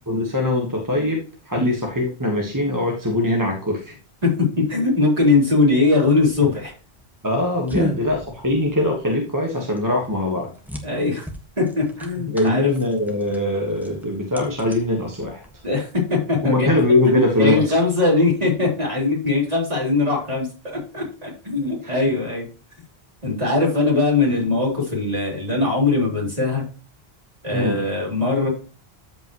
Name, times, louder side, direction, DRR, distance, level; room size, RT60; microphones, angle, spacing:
voice 1, 0.1-3.9 7.2-10.5 12.3-15.4 16.4-17.8 21.8-22.0 27.5-27.8, left 1 dB, 20° right, 0 dB, 1.4 m, -22 dB
voice 2, 4.2-6.7 7.7-7.8 10.8-11.3 11.6-12.7 15.6-16.7 17.1-22.5 23.2-26.6 27.4-28.5, left 3 dB, 40° right, -3 dB, 4.0 m, -20 dB
sound 1, 6.4-15.7, equal, ahead, 1.4 m, -35 dB
13.5 x 5.3 x 3.0 m, 0.36 s
omnidirectional pair, 1.1 m